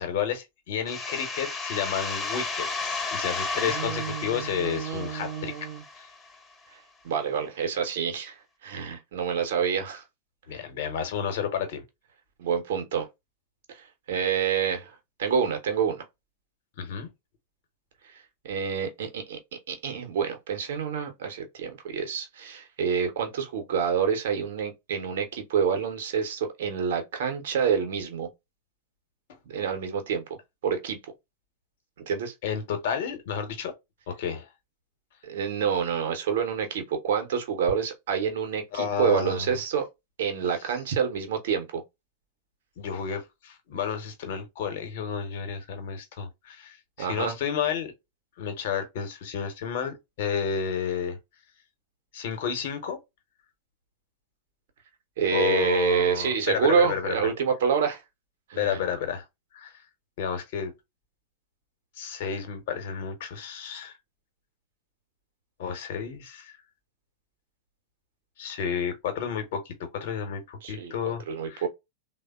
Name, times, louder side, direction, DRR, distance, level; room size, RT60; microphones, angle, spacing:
voice 1, 0.0-5.5 6.0-6.1 10.5-11.8 16.8-17.1 32.4-33.7 34.1-34.5 38.7-39.6 42.8-47.9 48.4-51.2 52.1-53.0 55.3-57.1 58.6-59.2 59.5-59.8 60.2-60.7 62.0-64.0 65.6-66.6 68.4-71.6, left 7 dB, 55° left, 0.9 m, -31 dB
sound 1, 0.9-6.3, left 3 dB, 20° left, 0.7 m, -33 dB
voice 2, 3.6-5.8 6.7-10.0 12.4-13.1 13.7-16.1 18.0-19.4 19.7-28.3 29.5-30.2 30.6-31.0 32.0-32.3 35.2-39.9 40.2-41.8 47.0-47.4 55.2-58.0 58.5-58.9 70.6-70.9 71.3-71.7, right 7 dB, 55° right, 0.7 m, -28 dB
3.3 x 2.1 x 2.3 m
figure-of-eight pair, 90°, 0 cm